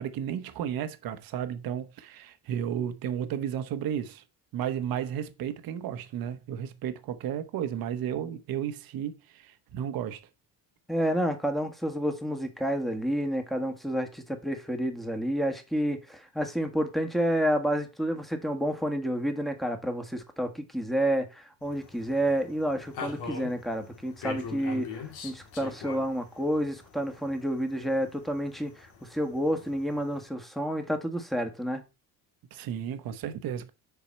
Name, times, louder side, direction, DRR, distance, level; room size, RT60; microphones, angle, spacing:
voice 1, 0.0-4.2 4.5-10.2 32.5-33.7, right 9 dB, 60° right, 1.1 m, -33 dB
voice 2, 10.9-31.8, equal, ahead, 1.4 m, -29 dB
sound 1, 21.6-30.2, left 6 dB, 80° left, 2.2 m, -44 dB
7.1 x 4.7 x 4.3 m
cardioid pair, 105°, 39 cm